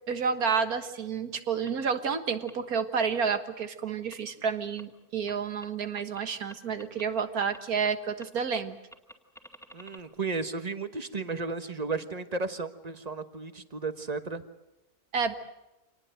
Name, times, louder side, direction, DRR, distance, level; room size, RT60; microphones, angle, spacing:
voice 1, 0.1-8.8 15.1-15.3, right 6 dB, 85° right, 9 dB, 2.0 m, -30 dB
sound 1, 1.7-1.8 2.5-2.6 3.3-3.4 4.1-4.2 4.8-4.9 5.3-5.4 5.6-5.7 6.0-6.2 6.5-7.6 7.8-7.9 8.2-8.6 8.9-10.0, equal, ahead, 2.2 m, -48 dB
voice 2, 9.7-14.4, right 4 dB, 30° right, 10 dB, 1.3 m, -34 dB
26.0 x 19.5 x 7.8 m, 0.94 s
omnidirectional pair, 1.5 m